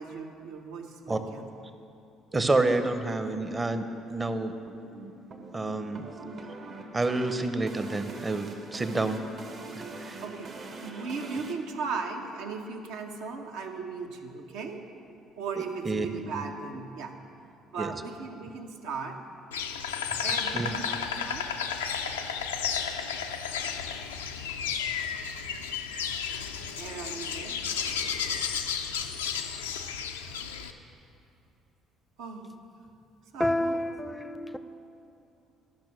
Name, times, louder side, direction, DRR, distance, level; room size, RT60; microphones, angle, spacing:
voice 1, 0.0-1.5 10.2-14.8 15.4-17.1 17.7-19.2 20.2-21.5 26.8-27.6 32.2-32.6 33.3-33.8, right 5 dB, 70° right, 0.8 m, -37 dB
voice 2, 2.3-4.5 5.5-6.1 6.9-9.2 10.0-10.2 15.8-16.1 16.3-16.4 17.8-17.9 20.5-20.7, right 2 dB, 25° right, 0.8 m, -28 dB
sound 1, 4.7-11.5, right 3 dB, 50° right, 1.2 m, -43 dB
Insect, 19.5-30.7, left 7 dB, 85° left, 0.4 m, -32 dB
voice 3, 33.4-34.6, left 1 dB, 10° left, 0.5 m, -29 dB
12.0 x 6.1 x 6.1 m
hypercardioid pair, 50°, 0 cm